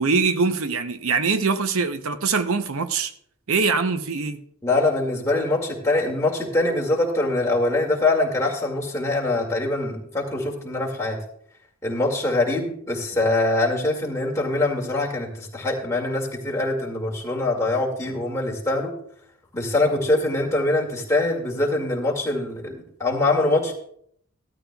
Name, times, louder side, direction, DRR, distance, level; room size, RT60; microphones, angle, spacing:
voice 1, 0.0-3.1 3.5-4.4, right 4 dB, 70° right, 0.7 m, -23 dB
voice 2, 4.6-11.2 11.8-18.9 19.5-23.7, left 2 dB, 15° left, 2.1 m, -23 dB
15.0 x 12.5 x 2.3 m
head